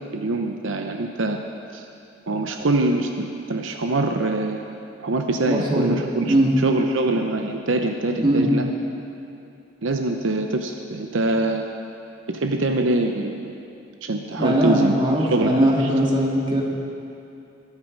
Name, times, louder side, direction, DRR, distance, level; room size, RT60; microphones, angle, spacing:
voice 1, 0.1-1.4 1.7-1.9 2.3-8.7 9.8-11.7 12.3-13.5 14.0-15.9, right 2 dB, 75° right, 4 dB, 0.8 m, -24 dB
voice 2, 5.5-5.9 6.3-6.5 8.2-8.5 14.4-16.6, right 1 dB, 25° right, -2 dB, 2.1 m, -20 dB
21.5 x 8.2 x 5.3 m, 2.7 s
head